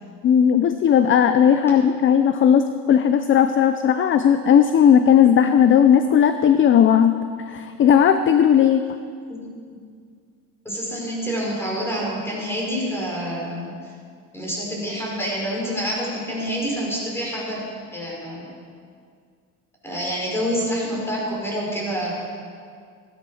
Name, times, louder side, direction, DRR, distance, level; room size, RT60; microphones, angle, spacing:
voice 1, 0.2-8.8, left 8 dB, 35° left, 9 dB, 0.6 m, -16 dB
voice 2, 10.6-13.9 14.3-17.6 17.9-18.5 19.8-22.1, equal, 5° left, -4 dB, 5.1 m, -27 dB
16.5 x 12.5 x 5.7 m, 2.2 s
cardioid pair, 135°, 36 cm